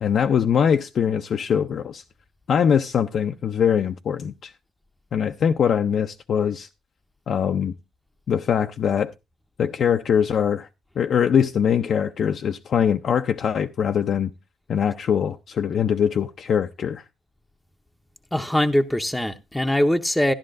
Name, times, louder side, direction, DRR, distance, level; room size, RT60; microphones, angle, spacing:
voice 1, 0.0-2.0 2.5-4.5 5.1-6.7 7.3-7.7 8.3-9.1 9.6-10.7 11.0-14.3 14.7-17.0, left 8 dB, 55° left, 0.5 m, -22 dB
voice 2, 18.3-20.3, left 1 dB, 5° left, 0.7 m, -22 dB
13.0 x 11.0 x 2.5 m
cardioid pair, 125°, 0 cm